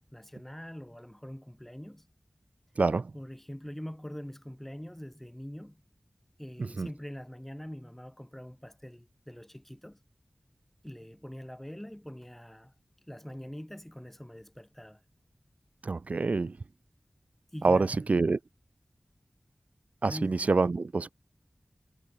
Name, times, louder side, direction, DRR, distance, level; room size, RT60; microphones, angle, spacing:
voice 1, 0.0-2.0 3.1-5.8 6.4-10.0 10.8-12.7 13.1-15.0 17.5-18.0 20.1-20.5, equal, 10° left, 5.6 m, -43 dB
voice 2, 15.8-16.5 17.6-18.4 20.0-21.1, right 3 dB, 75° right, 1.0 m, -26 dB
wide cardioid pair, 45°, 2 cm